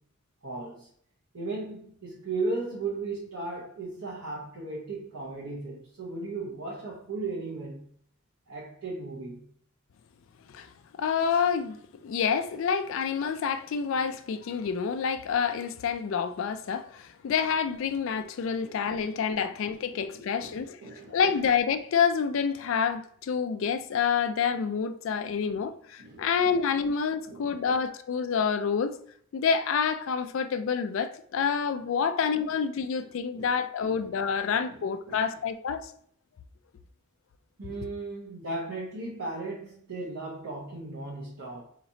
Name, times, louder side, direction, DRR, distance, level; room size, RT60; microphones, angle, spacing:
voice 1, 0.4-0.9 1.3-7.8 8.5-9.4 18.6-18.7 20.1-21.4 25.3-25.6 26.0-26.6 27.3-27.7 33.3-33.5 33.8-34.1 34.4-35.3 37.6-41.6, right 3 dB, 90° right, 0.9 m, -37 dB
voice 2, 11.0-11.8 12.0-29.0 29.3-35.9, left 6 dB, 65° left, 0.3 m, -28 dB
4.0 x 2.9 x 2.7 m
head